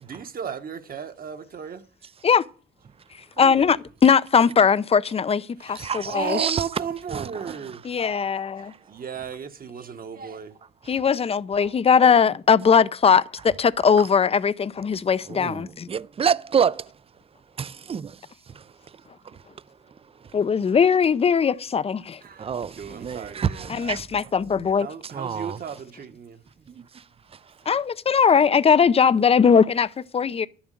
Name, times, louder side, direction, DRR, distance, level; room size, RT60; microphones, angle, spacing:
voice 1, 0.0-1.8 3.4-3.7 5.6-7.8 8.9-10.5 22.2-24.0 24.8-26.4, right 7 dB, 45° right, 1.2 m, -35 dB
voice 2, 3.4-6.4 7.8-8.7 10.9-15.9 20.3-22.2 23.7-24.9 27.7-30.5, left 6 dB, 30° left, 0.5 m, -20 dB
voice 3, 5.7-6.6 7.1-7.8 8.6-8.8 10.8-11.0 11.6-11.7 14.0-14.1 15.3-16.9 17.6-18.1 18.5-20.4 22.4-24.2 24.5-24.7 25.0-25.6 26.7-27.6, right 7 dB, 30° right, 0.5 m, -29 dB
11.0 x 7.1 x 7.6 m
cardioid pair, 90°, 20 cm